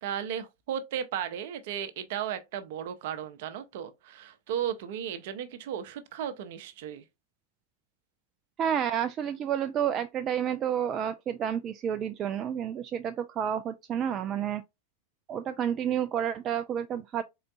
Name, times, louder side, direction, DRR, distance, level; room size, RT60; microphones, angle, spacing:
voice 1, 0.0-7.0, right 9 dB, 50° right, 0.7 m, -35 dB
voice 2, 8.6-14.6 15.3-17.2, right 9 dB, 30° right, 0.3 m, -30 dB
4.2 x 3.8 x 2.4 m
figure-of-eight pair, 90°, 0 cm